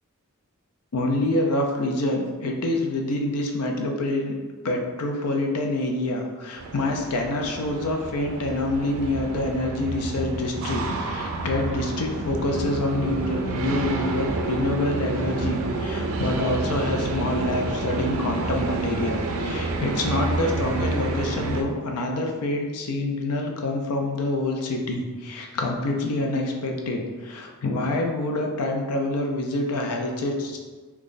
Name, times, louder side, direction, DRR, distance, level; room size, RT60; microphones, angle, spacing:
voice 1, 0.9-4.4 4.6-30.6, left 2 dB, 90° left, 2 dB, 0.5 m, -26 dB
sound 1, 6.6-21.6, right 2 dB, 65° right, 0.4 m, -29 dB
3.1 x 2.4 x 3.9 m, 1.4 s
head